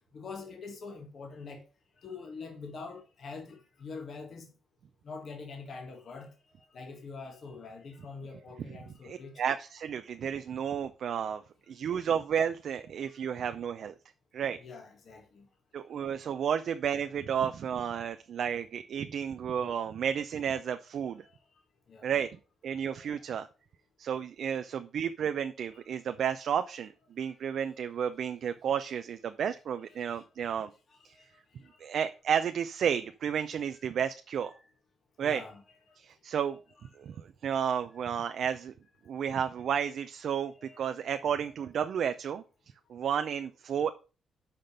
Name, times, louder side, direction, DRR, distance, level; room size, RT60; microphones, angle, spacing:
voice 1, 0.1-1.6 2.0-4.5 5.0-9.4 11.9-12.0 13.1-13.2 14.6-15.5 16.0-16.2 21.2-21.6 21.9-22.2 22.8-23.1 25.7-25.8 27.2-27.3 30.1-30.5 30.9-32.0 35.2-35.6 35.9-36.0 36.5-36.6 40.6-40.9, left 4 dB, 55° left, 1.7 m, -45 dB
voice 2, 9.0-11.4 11.7-13.9 14.3-14.6 15.7-21.2 22.0-22.3 22.6-23.5 24.0-30.7 31.0-31.1 31.8-34.5 35.2-35.4 36.0-36.6 37.0-38.7 39.1-42.4 42.9-43.9, right 8 dB, 65° right, 0.5 m, -32 dB
5.9 x 5.1 x 6.6 m
cardioid pair, 95°, 0 cm